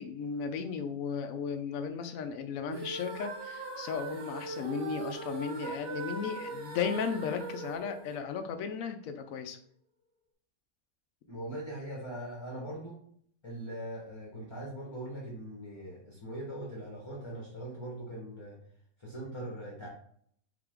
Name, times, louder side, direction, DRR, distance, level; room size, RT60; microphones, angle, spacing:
voice 1, 0.0-9.6, left 6 dB, 80° left, 8 dB, 1.0 m, -35 dB
sound 1, 2.7-8.8, right 3 dB, 75° right, 1.5 m, -40 dB
voice 2, 11.3-13.0 13.4-18.6 19.0-19.9, right 1 dB, 20° left, -3 dB, 1.0 m, -41 dB
4.9 x 2.9 x 3.6 m, 0.62 s
omnidirectional pair, 1.4 m